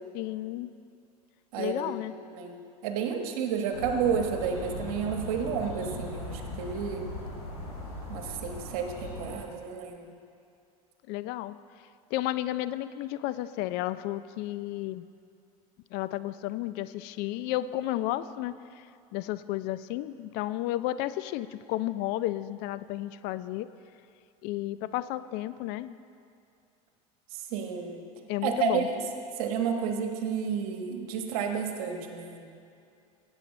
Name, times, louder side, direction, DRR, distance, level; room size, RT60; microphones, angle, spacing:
voice 1, 0.1-0.7 1.6-2.1 11.1-11.6 12.1-15.1 15.9-18.9 19.1-23.7 24.4-26.0 28.3-28.9, left 15 dB, 60° left, 15 dB, 0.4 m, -32 dB
voice 2, 2.3-7.0 8.1-10.2 27.5-28.0 28.4-29.0 29.4-32.5, right 6 dB, 75° right, 4 dB, 1.3 m, -31 dB
sound 1, 3.7-9.4, left 1 dB, 90° left, 3.1 m, -39 dB
13.5 x 8.9 x 4.1 m, 2.5 s
hypercardioid pair, 90°, 19 cm